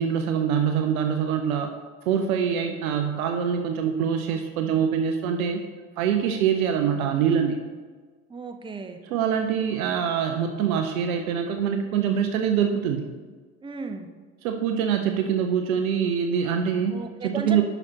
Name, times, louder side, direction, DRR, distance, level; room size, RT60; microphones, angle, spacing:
voice 1, 0.0-1.7 2.0-5.6 6.0-7.6 9.0-13.1 14.4-17.6, right 8 dB, 70° right, 5 dB, 0.6 m, -24 dB
voice 2, 8.3-9.0 13.6-14.1 16.9-17.6, right 4 dB, 10° right, 6 dB, 0.6 m, -35 dB
11.0 x 5.8 x 2.9 m, 1.4 s
figure-of-eight pair, 50°, 43 cm